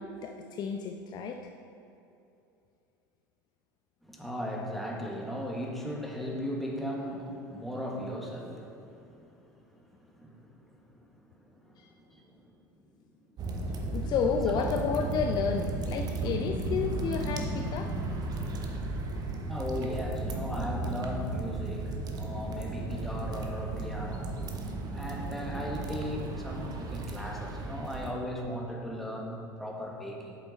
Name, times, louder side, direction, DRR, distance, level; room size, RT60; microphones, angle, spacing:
voice 1, 0.0-1.4 11.8-11.9 13.9-17.9 19.1-19.3, left 6 dB, 40° left, 4 dB, 0.5 m, -31 dB
voice 2, 4.1-10.7 10.9-11.3 11.6-12.3 14.6-14.7 19.5-24.3 24.9-30.4, equal, ahead, -1 dB, 1.6 m, -37 dB
sound 1, 13.4-28.1, right 2 dB, 35° right, 1.0 m, -34 dB
8.2 x 7.3 x 4.3 m, 2.7 s
figure-of-eight pair, 70°, 11 cm